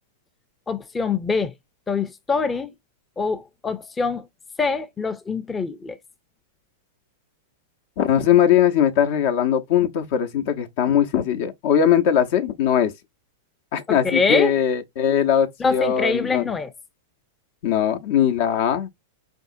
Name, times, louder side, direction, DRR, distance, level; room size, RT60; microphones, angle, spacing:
voice 1, 0.7-1.5 1.9-2.7 3.2-4.3 4.6-6.0 13.9-14.5 15.6-16.7, left 4 dB, 15° left, 0.6 m, -24 dB
voice 2, 8.0-12.9 13.7-16.5 17.6-18.9, left 9 dB, 55° left, 0.9 m, -20 dB
4.9 x 3.5 x 2.6 m
hypercardioid pair, 100°, 0 cm